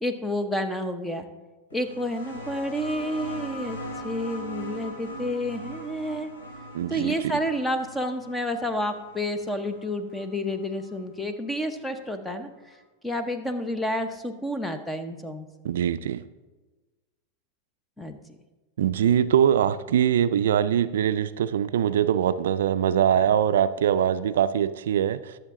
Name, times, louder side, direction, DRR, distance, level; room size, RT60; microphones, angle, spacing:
voice 1, 0.0-1.3 1.7-3.8 4.0-6.3 6.9-12.8 13.0-15.5 18.0-18.4, equal, 10° left, 8 dB, 0.9 m, -30 dB
sound 1, 1.7-11.0 12.1-12.2, equal, 90° left, 2.9 m, -40 dB
voice 2, 6.7-7.1 15.6-16.2 18.8-25.4, right 9 dB, 80° right, 13 dB, 0.4 m, -23 dB
12.5 x 6.9 x 3.7 m, 1.2 s
hypercardioid pair, 115°, 0 cm